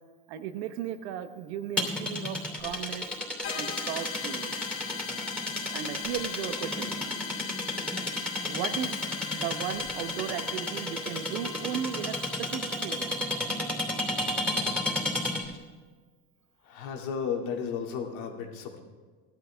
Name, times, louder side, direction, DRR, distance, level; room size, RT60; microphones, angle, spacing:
voice 1, 0.3-3.1 3.5-4.6 5.7-7.0 8.5-13.2, right 9 dB, 85° right, 9 dB, 1.1 m, -36 dB
sound 1, 1.8-15.6, left 1 dB, 5° left, 2.8 m, -32 dB
sound 2, 3.4-12.8, left 7 dB, 40° left, 1.3 m, -40 dB
voice 2, 16.7-18.8, left 6 dB, 70° left, 2 dB, 2.4 m, -33 dB
17.0 x 12.0 x 3.5 m, 1.5 s
supercardioid pair, 130°, 33 cm